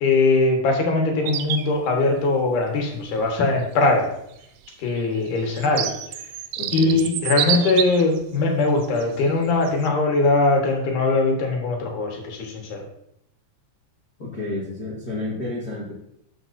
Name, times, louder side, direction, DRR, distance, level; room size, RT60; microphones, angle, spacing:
voice 1, 0.0-4.1 4.8-5.9 6.7-12.8, left 3 dB, 75° left, 1 dB, 3.0 m, -21 dB
sound 1, 1.3-1.7 3.2-3.3 4.4-8.2 8.8-9.0 9.7-9.9, right 10 dB, 85° right, 2.1 m, -27 dB
voice 2, 6.6-7.0 14.2-15.9, left 2 dB, 40° left, -6 dB, 1.5 m, -31 dB
13.0 x 6.1 x 2.6 m, 0.76 s
omnidirectional pair, 3.7 m